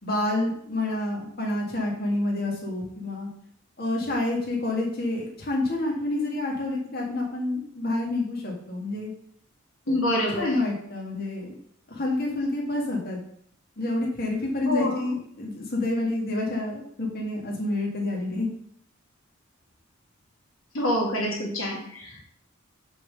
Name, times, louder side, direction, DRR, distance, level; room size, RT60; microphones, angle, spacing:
voice 1, 0.0-3.3 3.8-9.1 10.3-11.5 11.9-13.2 13.8-18.5, left 2 dB, 45° left, -2 dB, 1.9 m, -28 dB
voice 2, 9.9-10.6 14.7-15.1 20.7-22.2, left 1 dB, 75° left, -1 dB, 1.8 m, -26 dB
7.5 x 3.8 x 6.3 m, 0.66 s
head